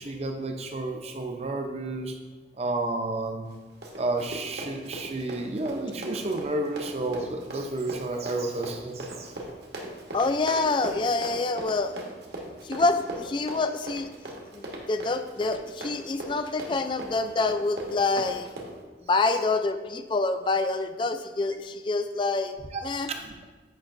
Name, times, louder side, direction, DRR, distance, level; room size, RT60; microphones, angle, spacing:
voice 1, 0.0-2.1 2.6-3.5 4.0-9.3 22.7-22.8 23.1-23.3, right 2 dB, 35° right, 4 dB, 0.6 m, -31 dB
Run, 3.5-18.8, right 1 dB, 65° right, 1.1 m, -39 dB
voice 2, 10.1-12.0 12.6-14.1 14.5-18.5 19.1-22.5 22.8-23.1, left 3 dB, 25° left, 9 dB, 0.3 m, -26 dB
8.6 x 5.4 x 2.5 m, 1.3 s
head